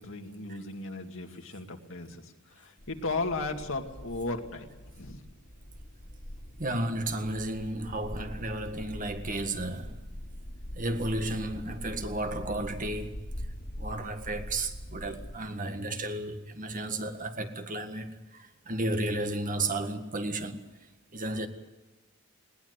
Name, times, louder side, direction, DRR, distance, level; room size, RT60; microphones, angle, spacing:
voice 1, 0.0-5.2, left 3 dB, 65° left, 2.3 m, -36 dB
sound 1, 2.8-15.4, equal, 50° left, 2.6 m, -43 dB
voice 2, 6.6-10.0 10.8-13.2 13.8-20.7 21.1-21.5, right 1 dB, 40° right, 1.7 m, -33 dB
20.5 x 18.5 x 8.2 m
head